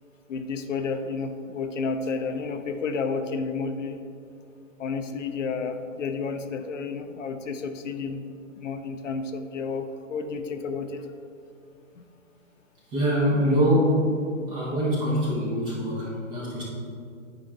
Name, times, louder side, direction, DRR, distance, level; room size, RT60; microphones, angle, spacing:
voice 1, 0.3-4.0 4.8-8.2 8.6-11.0 12.0-12.1, left 4 dB, 65° left, 7 dB, 0.6 m, -31 dB
voice 2, 12.9-14.1 14.5-16.6, equal, 10° right, -5 dB, 0.8 m, -24 dB
9.0 x 5.0 x 2.8 m, 2.4 s
hypercardioid pair, 150°, 40 cm